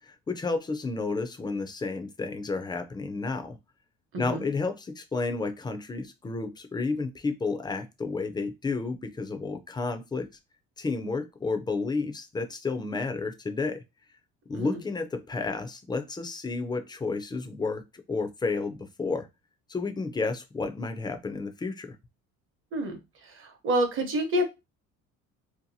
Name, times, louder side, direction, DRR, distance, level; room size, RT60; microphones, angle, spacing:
voice 1, 0.3-3.6 4.2-10.3 10.8-13.8 14.5-17.8 18.1-19.3 19.7-21.9, left 3 dB, 15° left, 0.3 m, -31 dB
voice 2, 4.1-4.5 14.5-14.8 22.7-23.0 23.3-24.4, equal, 45° right, 0.8 m, -28 dB
2.7 x 2.2 x 2.6 m
cardioid pair, 120°, 29 cm